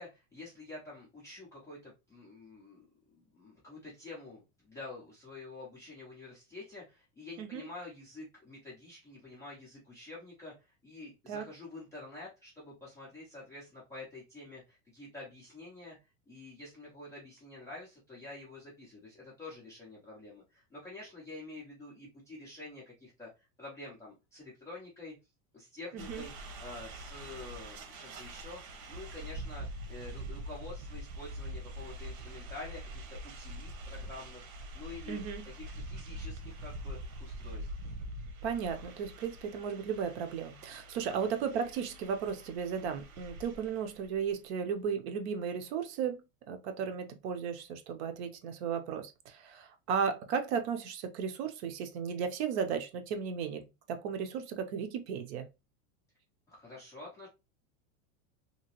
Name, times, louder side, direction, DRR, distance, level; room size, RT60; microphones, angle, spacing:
voice 1, 0.0-2.9 3.1-16.0 16.3-25.1 25.5-26.3 26.6-35.2 35.5-37.7 41.0-41.3 56.5-57.3, left 2 dB, 10° left, 0.4 m, -48 dB
sound 1, 26.0-44.3, right 1 dB, 80° right, 1.1 m, -44 dB
voice 2, 35.1-35.5 38.4-55.5, right 7 dB, 55° right, 0.6 m, -35 dB
2.9 x 2.7 x 2.8 m
supercardioid pair, 165°, 41 cm